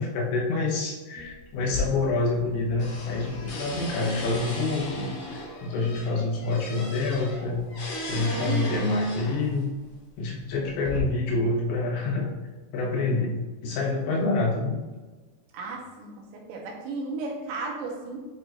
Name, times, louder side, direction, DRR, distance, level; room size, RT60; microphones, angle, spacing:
voice 1, 0.0-7.7 8.1-9.7 10.2-12.3 12.7-14.8, left 3 dB, 90° left, -3 dB, 3.7 m, -27 dB
sound 1, 1.2-4.7, right 1 dB, 60° right, 1.8 m, -46 dB
sound 2, 1.6-2.5 2.8-9.6 10.4-11.0, left 1 dB, 60° left, 2.5 m, -36 dB
voice 2, 8.5-9.0 15.5-18.2, right 3 dB, 75° right, -1 dB, 3.1 m, -34 dB
9.8 x 4.4 x 2.7 m, 1.3 s
omnidirectional pair, 5.1 m